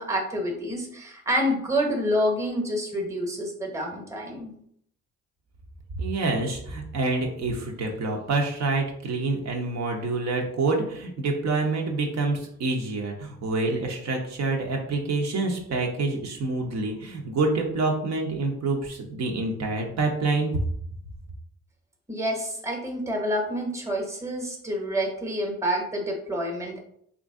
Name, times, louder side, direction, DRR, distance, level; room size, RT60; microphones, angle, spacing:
voice 1, 0.0-4.5 22.1-26.9, equal, 10° right, 1 dB, 0.9 m, -28 dB
voice 2, 6.0-20.6, right 3 dB, 60° right, 1 dB, 0.7 m, -27 dB
3.0 x 2.5 x 3.6 m, 0.68 s
cardioid pair, 90°, 30 cm